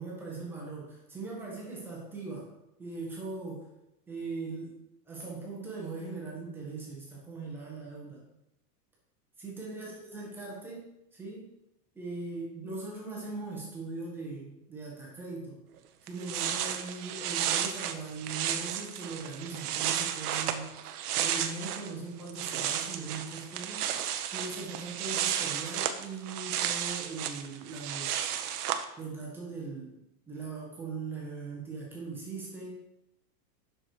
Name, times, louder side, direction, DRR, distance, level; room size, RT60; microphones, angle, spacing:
voice 1, 0.0-2.5 2.8-3.7 4.1-4.8 5.0-8.2 9.4-11.4 11.9-15.6 16.0-20.8 21.2-23.9 24.3-28.2 29.0-29.9 30.3-32.8, right 3 dB, 5° right, -5 dB, 1.3 m, -40 dB
sound 1, 15.8-15.9 16.1-21.9 22.2-28.8, right 10 dB, 65° right, 0.9 m, -33 dB
7.6 x 6.2 x 4.8 m, 0.85 s
supercardioid pair, 180°, 49 cm